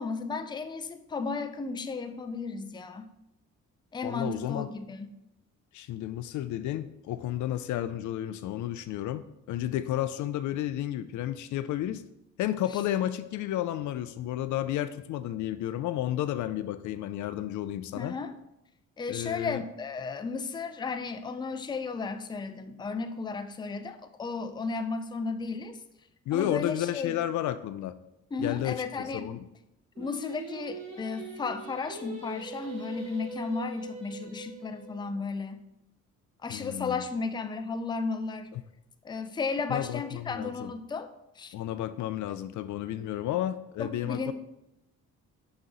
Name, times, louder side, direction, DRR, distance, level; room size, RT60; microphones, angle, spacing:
voice 1, 0.0-3.1 3.9-5.1 18.0-18.4 19.0-25.8 26.3-27.2 28.3-29.3 30.0-35.6 36.4-38.5 39.0-41.1 41.4-41.5 43.8-44.3, left 4 dB, 15° left, 9 dB, 0.4 m, -34 dB
voice 2, 4.0-4.7 5.7-12.0 12.4-18.2 19.1-19.6 26.3-28.0 28.4-29.4 36.5-37.0 38.5-38.6 39.7-40.7 41.5-44.3, left 12 dB, 75° left, 12 dB, 0.4 m, -32 dB
Singing, 30.0-35.1, right 3 dB, 45° right, 2.1 m, -42 dB
6.3 x 3.0 x 5.3 m, 0.85 s
cardioid pair, 90°, 30 cm